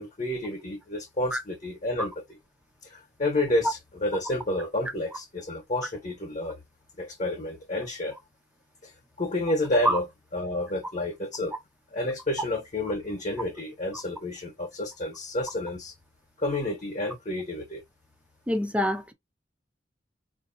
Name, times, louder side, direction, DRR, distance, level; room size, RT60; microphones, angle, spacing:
voice 1, 0.0-2.4 2.8-6.6 7.0-8.2 8.8-8.9 9.2-10.0 10.3-11.5 11.9-15.9 16.4-17.8, left 1 dB, 40° left, 1.0 m, -30 dB
voice 2, 18.5-19.1, equal, 5° right, 0.6 m, -25 dB
4.7 x 2.7 x 2.6 m
head